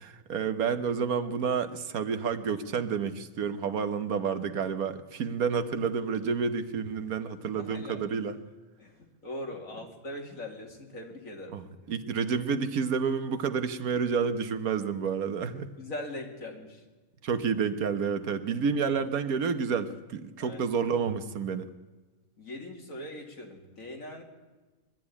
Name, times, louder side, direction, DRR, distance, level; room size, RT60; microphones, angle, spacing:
voice 1, 0.3-8.4 11.5-11.6 11.9-15.7 17.2-21.7, right 6 dB, 80° right, 10 dB, 1.5 m, -29 dB
voice 2, 7.6-8.1 8.8-11.6 15.8-16.8 20.4-20.6 22.4-24.2, left 1 dB, 65° left, 1 dB, 3.0 m, -41 dB
22.0 x 12.5 x 9.8 m, 1.2 s
omnidirectional pair, 1.5 m